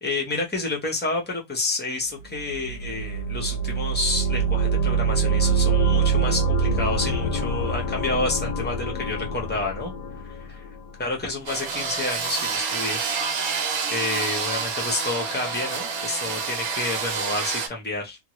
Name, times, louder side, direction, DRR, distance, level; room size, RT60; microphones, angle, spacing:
voice 1, 0.0-9.9 10.2-10.7 11.0-13.0 13.9-18.2, left 3 dB, 10° left, 0.5 m, -29 dB
sound 1, 2.3-11.2, right 4 dB, 75° left, 1.0 m, -25 dB
sound 2, 11.4-17.7, right 5 dB, 80° right, 1.1 m, -28 dB
2.8 x 2.3 x 3.0 m
omnidirectional pair, 1.5 m